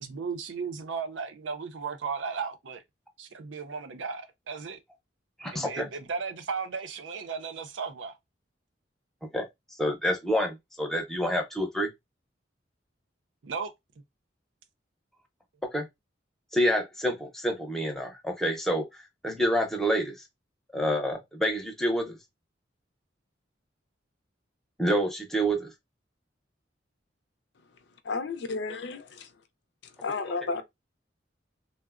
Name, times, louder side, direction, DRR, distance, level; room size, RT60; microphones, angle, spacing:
voice 1, 0.0-2.8 3.2-4.8 5.5-8.1 13.4-13.7, right 5 dB, 90° right, 0.5 m, -35 dB
voice 2, 5.4-5.9 9.3-9.4 9.8-11.9 15.7-15.9 16.5-20.2 20.7-22.2 24.8-25.7, equal, ahead, 0.6 m, -28 dB
voice 3, 27.7-29.3 29.8-30.6, left 4 dB, 65° left, 0.4 m, -33 dB
3.6 x 2.0 x 2.3 m
head